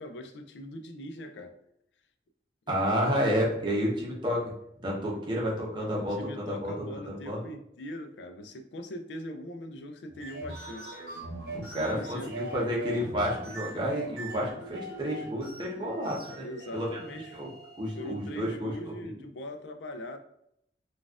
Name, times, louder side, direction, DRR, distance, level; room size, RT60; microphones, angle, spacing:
voice 1, 0.0-1.6 2.7-2.8 5.1-5.2 6.0-11.0 11.6-12.4 16.4-17.5 17.9-20.2, left 1 dB, 85° left, 7 dB, 0.4 m, -41 dB
voice 2, 2.7-4.5 4.8-6.7 7.0-7.4 11.5-16.9 17.3-17.5 17.8-18.7 19.0-19.1, equal, 25° right, -3 dB, 0.8 m, -30 dB
sound 1, 10.1-18.4, right 2 dB, 60° right, 0.9 m, -42 dB
4.0 x 2.4 x 2.4 m, 0.73 s
head